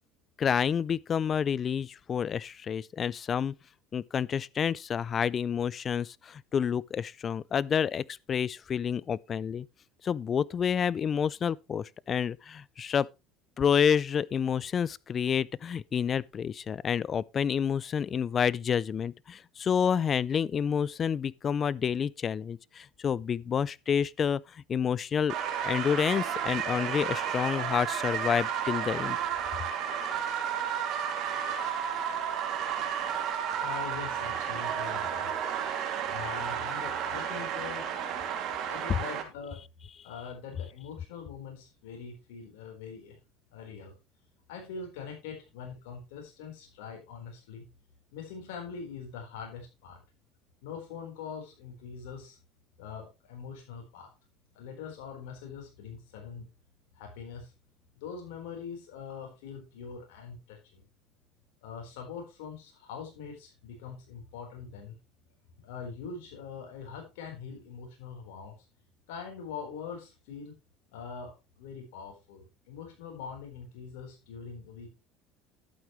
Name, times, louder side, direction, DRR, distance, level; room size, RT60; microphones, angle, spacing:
voice 1, 0.4-3.5 3.9-9.7 10.0-13.1 13.6-25.4 25.6-29.2, left 7 dB, 35° left, 0.4 m, -29 dB
sound 1, 25.3-39.2, right 8 dB, 55° right, 2.4 m, -32 dB
voice 2, 33.6-35.3 36.1-37.9 38.7-39.6 40.0-43.2 43.5-43.9 44.5-47.6 48.1-50.0 50.6-52.4 52.8-54.1 54.5-56.5 56.9-57.5 58.0-60.9 61.6-65.0 65.6-68.5 69.1-70.5 70.9-75.0, left 6 dB, 85° left, 4.1 m, -43 dB
11.5 x 8.6 x 3.1 m
supercardioid pair, 105°, 0 cm